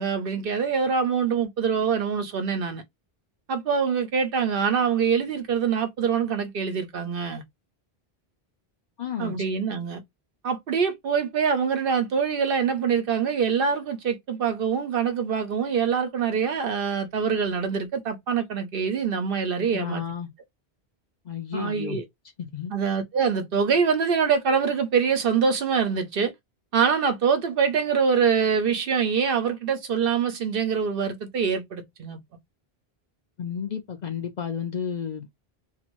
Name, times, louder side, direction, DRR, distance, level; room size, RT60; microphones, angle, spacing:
voice 1, 0.0-2.8 3.5-7.4 9.2-10.0 10.4-20.0 21.5-22.0 22.7-26.3 26.7-32.2, right 6 dB, 65° right, 0.8 m, -24 dB
voice 2, 9.0-9.5 19.7-20.3 21.3-22.0 22.4-22.7 33.4-35.3, left 7 dB, 50° left, 0.6 m, -32 dB
2.6 x 2.5 x 2.9 m
omnidirectional pair, 1.1 m